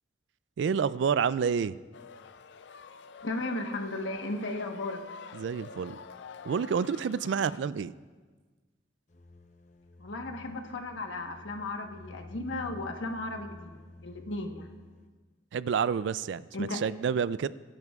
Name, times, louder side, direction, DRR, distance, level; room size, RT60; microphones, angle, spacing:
voice 1, 0.6-1.8 5.3-6.0 6.4-7.9 15.5-17.5, right 6 dB, 70° right, 17 dB, 0.3 m, -29 dB
sound 1, 1.9-7.6, left 5 dB, 65° left, 0.4 m, -48 dB
voice 2, 3.2-5.0 10.0-13.7 14.0-14.7 16.5-16.8, left 2 dB, 90° left, 4 dB, 1.2 m, -35 dB
sound 2, 9.1-15.1, left 2 dB, 40° left, 0.8 m, -50 dB
20.5 x 11.0 x 2.4 m, 1.4 s
head